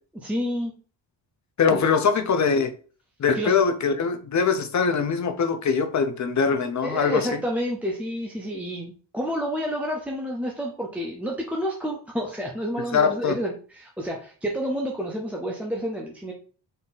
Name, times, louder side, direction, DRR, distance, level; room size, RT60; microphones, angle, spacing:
voice 1, 0.1-0.7 1.7-1.9 3.3-3.6 6.8-16.3, equal, 5° right, -2 dB, 0.5 m, -29 dB
voice 2, 1.6-2.7 3.2-7.3 12.9-13.3, left 5 dB, 40° left, 7 dB, 0.6 m, -22 dB
4.0 x 2.7 x 3.9 m, 0.40 s
wide cardioid pair, 145°, 45 cm